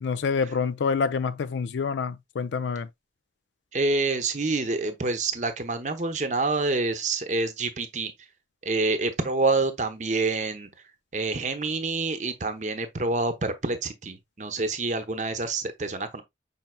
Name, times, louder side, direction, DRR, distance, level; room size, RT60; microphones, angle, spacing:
voice 1, 0.0-2.9, left 5 dB, 85° left, 0.4 m, -27 dB
voice 2, 3.7-8.1 8.6-10.7 11.1-16.2, right 3 dB, 40° right, 0.7 m, -27 dB
5.6 x 4.3 x 2.2 m
head